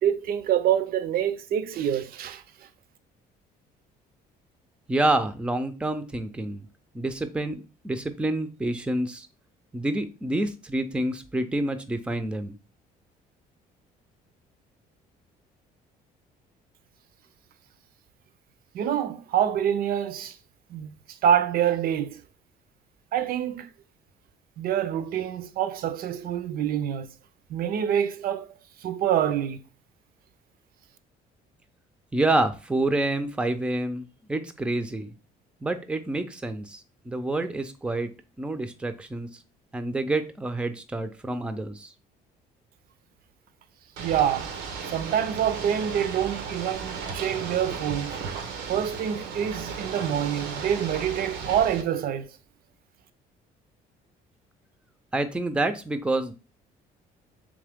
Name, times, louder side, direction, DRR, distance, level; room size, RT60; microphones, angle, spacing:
voice 1, 0.0-2.4 18.7-20.4 20.7-22.2 23.1-23.7 24.6-27.1 27.5-28.5 28.8-29.6 44.0-44.5 44.9-48.2 48.7-52.3, right 9 dB, 60° right, 0.5 m, -26 dB
voice 2, 4.9-6.7 6.9-9.3 9.7-12.6 32.1-35.1 35.6-38.1 38.4-39.3 39.7-41.9 55.1-56.3, right 2 dB, 5° right, 0.5 m, -28 dB
Ocean / Boat Water vehicle, 44.0-51.8, right 5 dB, 90° right, 0.8 m, -35 dB
3.7 x 3.2 x 3.5 m
cardioid pair, 110°, 17 cm